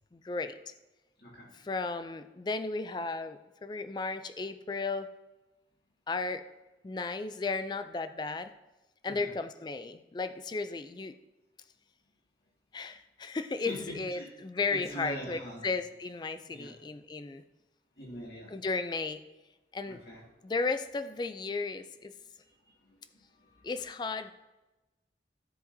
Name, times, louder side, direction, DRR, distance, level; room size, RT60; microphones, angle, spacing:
voice 1, 0.1-0.7 1.5-5.1 6.1-6.5 6.8-8.5 9.0-11.1 12.7-17.4 18.5-19.2 19.7-20.0 20.4-22.1 23.6-24.3, left 3 dB, 25° left, 10 dB, 0.3 m, -34 dB
voice 2, 1.2-1.5 9.0-9.3 13.6-14.3 14.7-15.6 16.5-16.7 18.0-18.5 19.9-20.2 22.4-23.7, equal, 60° left, -4 dB, 2.3 m, -44 dB
13.0 x 4.9 x 2.7 m, 1.1 s
head